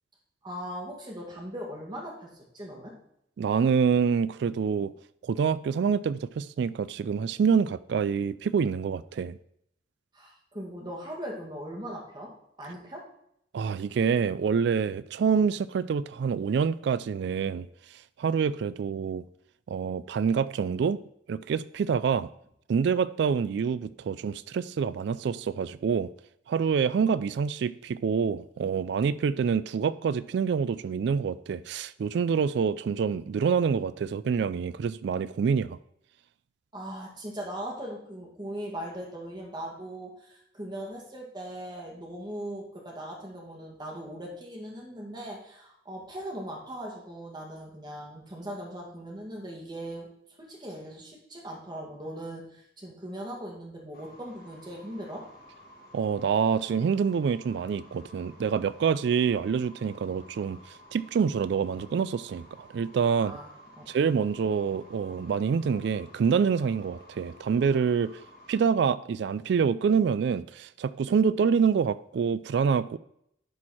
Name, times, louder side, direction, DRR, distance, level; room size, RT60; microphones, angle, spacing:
voice 1, 0.4-3.0 10.1-12.3 12.6-13.1 36.7-50.1 50.4-55.3 63.2-63.5 63.8-63.9, right 1 dB, 25° right, 2.0 m, -39 dB
voice 2, 3.4-4.9 5.2-9.4 13.5-17.7 18.2-19.2 19.7-21.0 21.3-22.3 22.7-26.1 26.5-35.8 55.9-60.6 60.9-63.3 63.9-68.1 68.5-73.0, right 6 dB, 65° right, 0.3 m, -26 dB
sound 1, 53.9-68.7, equal, 55° left, 2.0 m, -53 dB
11.0 x 4.4 x 4.2 m
head